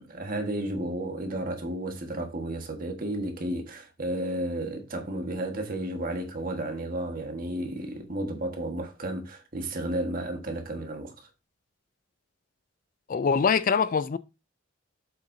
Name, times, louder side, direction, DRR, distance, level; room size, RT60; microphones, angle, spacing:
voice 1, 0.0-11.3, right 1 dB, 45° right, 1.5 m, -32 dB
voice 2, 13.1-14.2, left 6 dB, 40° left, 0.4 m, -23 dB
7.7 x 6.9 x 2.7 m
head